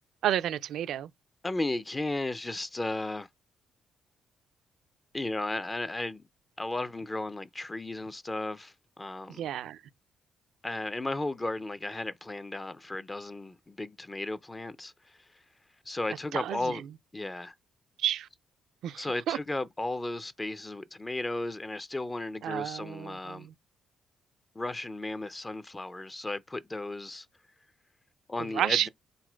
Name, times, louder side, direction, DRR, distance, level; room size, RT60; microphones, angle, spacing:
voice 1, 0.2-1.1 9.3-9.8 16.3-16.8 18.0-18.3 18.8-19.4 22.4-23.5 28.5-28.9, right 11 dB, 75° right, 0.4 m, -31 dB
voice 2, 1.4-3.3 5.1-6.2 6.6-9.5 10.6-15.4 15.9-16.8 17.1-17.5 19.0-23.5 24.5-27.3 28.3-28.9, left 2 dB, 25° left, 0.4 m, -35 dB
3.9 x 2.2 x 4.5 m
supercardioid pair, 60°, 0 cm